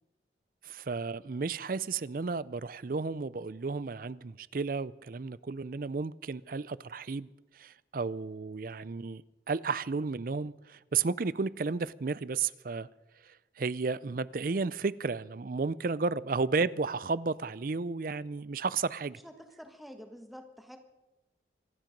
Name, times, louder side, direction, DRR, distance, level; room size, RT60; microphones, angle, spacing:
voice 1, 0.6-7.3 7.5-9.2 9.5-12.9 13.2-19.2, right 4 dB, 50° right, 0.5 m, -33 dB
voice 2, 19.2-20.8, equal, ahead, 1.4 m, -48 dB
26.0 x 10.5 x 5.3 m
head